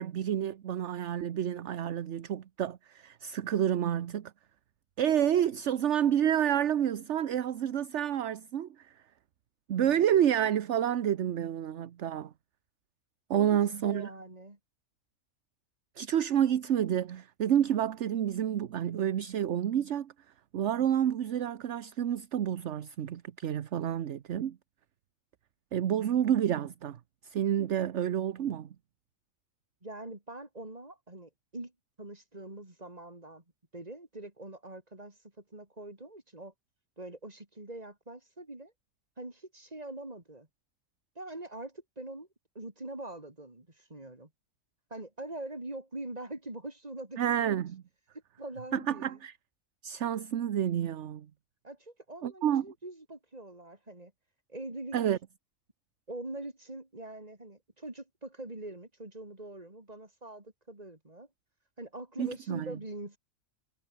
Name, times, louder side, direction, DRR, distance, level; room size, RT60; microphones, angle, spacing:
voice 1, 0.0-4.3 5.0-8.7 9.7-12.3 13.3-14.1 16.0-20.1 20.5-24.6 25.7-27.0 27.2-28.7 47.2-47.8 48.7-49.3 49.8-51.3 52.2-52.6 54.9-55.2 62.2-62.7, right 10 dB, 60° right, 1.1 m, -29 dB
voice 2, 13.3-14.6 29.8-31.7 32.0-33.4 33.7-36.5 37.0-38.7 39.2-40.5 41.2-42.3 42.6-44.3 44.9-47.2 48.4-49.2 51.6-54.1 54.5-55.0 56.1-61.3 61.8-63.2, right 2 dB, 30° right, 3.8 m, -43 dB
omnidirectional pair, 1.4 m